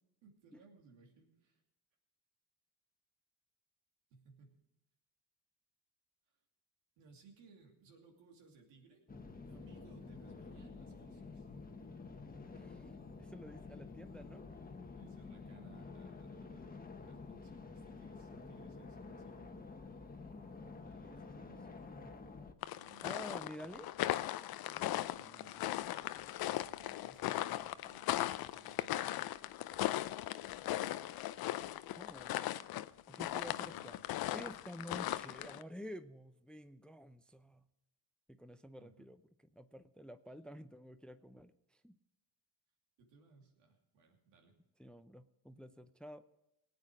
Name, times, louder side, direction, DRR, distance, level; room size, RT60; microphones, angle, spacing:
voice 1, 0.2-1.6 4.1-4.6 7.0-9.0 9.4-11.5 12.3-12.4 14.9-19.6 20.8-21.7 22.7-24.0 24.6-29.2 30.5-31.0 33.4-34.0 38.8-39.1 43.0-44.5, right 4 dB, 85° right, 1 dB, 2.8 m, -63 dB
sound 1, 9.1-22.5, left 4 dB, 20° left, 1.3 m, -50 dB
voice 2, 12.5-12.9 13.2-14.5 21.0-22.2 23.0-23.9 32.0-32.4 33.1-34.0 34.3-37.6 38.3-39.2 39.6-42.0 44.8-46.2, equal, ahead, 11 dB, 0.5 m, -50 dB
sound 2, 22.6-35.6, left 14 dB, 60° left, 0.6 m, -38 dB
18.5 x 8.7 x 5.0 m, 0.88 s
supercardioid pair, 80°, 42 cm